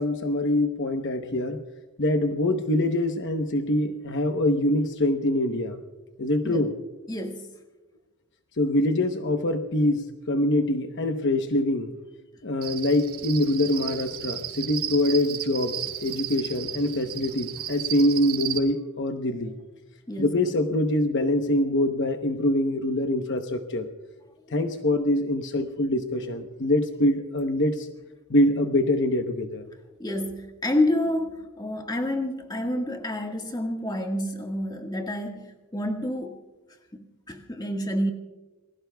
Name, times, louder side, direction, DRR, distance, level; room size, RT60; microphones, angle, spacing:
voice 1, 0.0-1.6 2.0-5.8 6.2-6.7 8.6-11.9 12.4-19.5 20.2-23.9 24.5-27.9 28.3-29.7, left 1 dB, 55° left, 6 dB, 1.0 m, -24 dB
voice 2, 7.1-7.5 20.1-20.4 30.0-36.4 36.9-38.1, left 1 dB, 20° left, 3 dB, 1.7 m, -29 dB
Cricket, 12.6-18.6, right 10 dB, 90° right, 2.5 m, -34 dB
28.0 x 20.5 x 2.3 m, 1.2 s
head